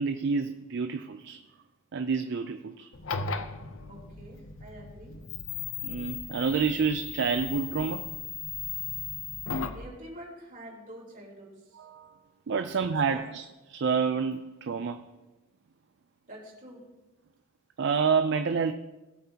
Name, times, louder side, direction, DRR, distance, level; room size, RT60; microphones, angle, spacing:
voice 1, 0.0-1.4 1.9-2.9 5.8-8.1 11.8-12.1 12.5-13.4 13.7-15.1 17.8-18.7, right 5 dB, 60° right, 0.5 m, -28 dB
sound 1, 2.9-9.9, left 5 dB, 70° left, 0.7 m, -37 dB
voice 2, 3.9-5.2 9.6-11.8 12.5-12.6 13.1-13.2 16.3-16.8, right 1 dB, 45° right, 3.7 m, -46 dB
19.0 x 8.0 x 2.9 m
head